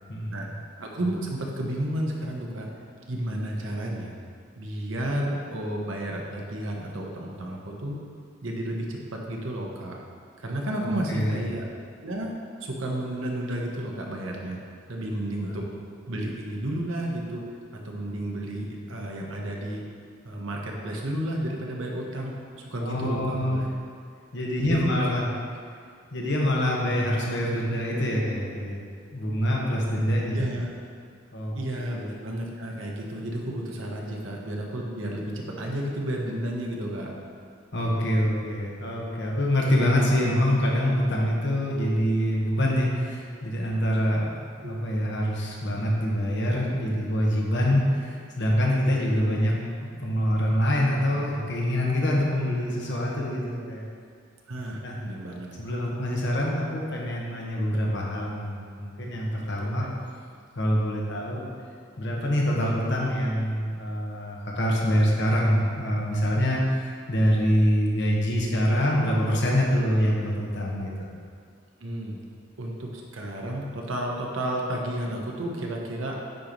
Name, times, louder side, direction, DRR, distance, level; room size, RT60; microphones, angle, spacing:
voice 1, 0.1-0.6 10.8-11.4 15.5-15.6 22.8-23.6 24.3-25.2 26.1-28.8 29.1-30.4 31.3-32.0 37.7-49.5 49.8-53.9 54.8-55.0 55.6-59.9 60.5-61.5 62.0-70.9, equal, 65° left, -3 dB, 1.3 m, -25 dB
voice 2, 0.8-2.7 3.1-4.1 4.6-8.0 8.4-10.0 10.4-11.6 12.0-12.3 12.6-14.6 14.9-15.7 16.1-17.5 17.7-19.8 20.2-23.6 24.6-25.2 30.3-30.7 31.5-37.1 44.6-44.7 54.5-55.8 59.6-59.9 71.8-72.2 72.6-76.2, right 1 dB, 85° right, -1 dB, 1.1 m, -32 dB
9.1 x 3.1 x 5.2 m, 2.2 s
head